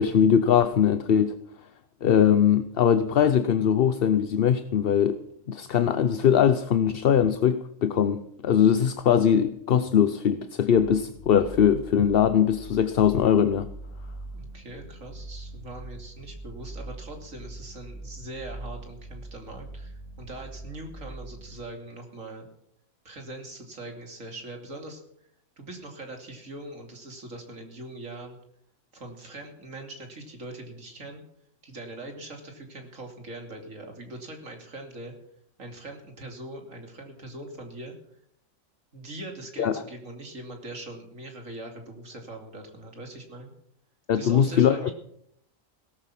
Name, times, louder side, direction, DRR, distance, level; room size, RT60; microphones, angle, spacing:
voice 1, 0.0-1.4 2.0-5.2 5.5-13.7 39.6-39.7 44.1-44.9, left 8 dB, 50° left, 11 dB, 0.8 m, -21 dB
sound 1, 10.7-21.6, right 2 dB, 75° left, 4.0 m, -42 dB
voice 2, 14.3-22.5 23.0-25.0 25.6-28.4 28.9-31.2 31.6-35.1 35.6-37.9 38.9-43.5 44.1-44.9, right 2 dB, 70° right, 3 dB, 3.2 m, -41 dB
17.5 x 13.0 x 5.9 m, 0.71 s
omnidirectional pair, 1.4 m